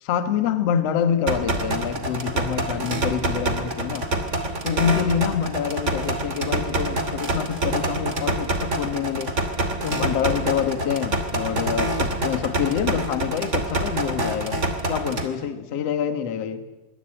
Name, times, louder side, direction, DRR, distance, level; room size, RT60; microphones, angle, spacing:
voice 1, 0.0-4.1 4.6-9.3 9.8-14.6 14.9-16.6, left 8 dB, 50° left, 2.0 m, -26 dB
sound 1, 1.3-15.3, right 2 dB, 25° right, 1.8 m, -26 dB
25.0 x 24.0 x 9.0 m
omnidirectional pair, 5.1 m